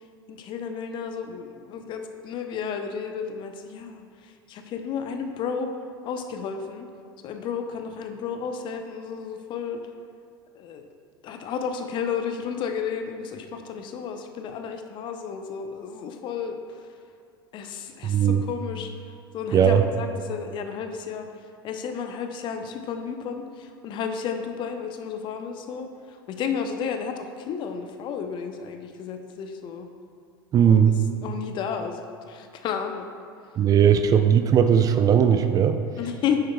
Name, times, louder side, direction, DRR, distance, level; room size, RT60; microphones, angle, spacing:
voice 1, 0.3-5.7 6.0-6.9 7.2-9.8 10.5-10.8 11.2-16.9 17.5-18.9 19.3-21.3 21.6-29.9 30.6-30.8 31.2-33.0 36.0-36.4, left 6 dB, 40° left, 6 dB, 0.6 m, -32 dB
voice 2, 18.0-18.4 19.5-19.8 30.5-31.0 33.6-35.8, right 8 dB, 30° right, 8 dB, 0.4 m, -18 dB
9.5 x 7.5 x 2.2 m, 2.2 s
figure-of-eight pair, 80°, 12 cm